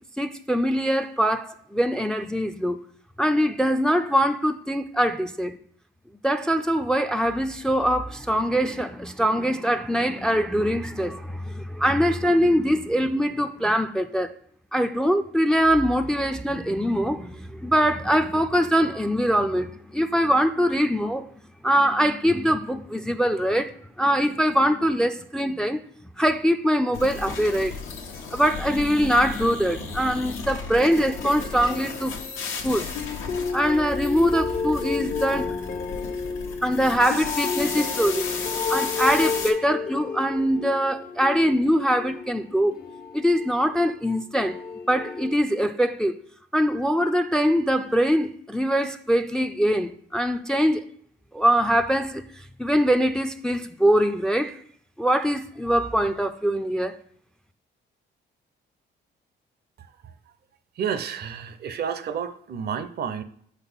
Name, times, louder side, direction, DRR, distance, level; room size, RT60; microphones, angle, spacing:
voice 1, 0.2-2.8 3.2-5.6 6.2-14.3 14.7-21.3 21.6-25.8 26.2-27.7 28.3-32.2 32.6-32.9 33.5-36.1 36.6-38.4 38.7-42.7 43.1-44.6 44.9-46.2 46.5-50.8 51.3-52.2 52.6-54.5 55.0-56.9, equal, 5° left, 0.3 m, -23 dB
sound 1, 26.9-39.5, left 5 dB, 90° left, 1.1 m, -35 dB
sound 2, 30.8-32.5 33.0-43.8 44.4-45.4, left 5 dB, 50° left, 0.6 m, -32 dB
voice 2, 59.8-60.1 60.8-63.2, right 7 dB, 55° right, 0.5 m, -31 dB
5.2 x 4.1 x 5.4 m
cardioid pair, 90°, 20 cm